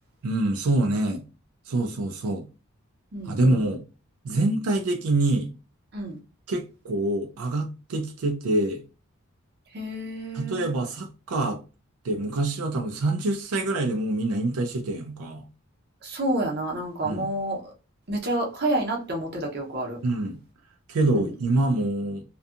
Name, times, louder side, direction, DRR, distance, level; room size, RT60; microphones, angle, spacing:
voice 1, 0.2-1.2 1.7-2.5 3.3-3.8 4.2-5.5 6.5-8.8 10.3-11.6 12.0-15.4 17.0-17.3 20.0-20.4 20.9-22.2, right 2 dB, 85° right, 0.4 m, -25 dB
voice 2, 3.1-3.7 5.9-6.2 9.7-10.7 16.0-17.7 18.1-20.0 21.1-21.3, right 1 dB, 45° right, 0.7 m, -29 dB
2.6 x 2.3 x 2.4 m
head